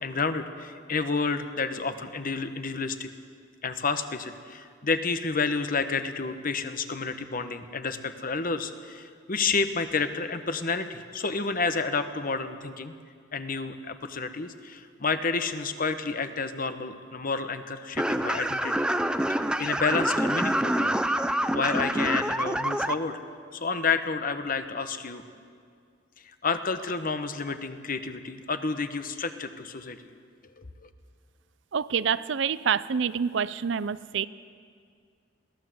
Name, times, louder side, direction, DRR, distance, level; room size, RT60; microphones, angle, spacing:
voice 1, 0.0-3.1 3.6-12.9 13.3-18.9 19.3-20.9 21.5-23.2 23.5-25.2 26.4-30.0 30.6-30.9, left 4 dB, 45° left, 9 dB, 1.1 m, -30 dB
sound 1, 18.0-22.9, right 1 dB, 5° right, 0.6 m, -26 dB
voice 2, 31.7-34.3, right 7 dB, 65° right, 17 dB, 0.5 m, -27 dB
22.0 x 16.0 x 7.8 m, 2.2 s
head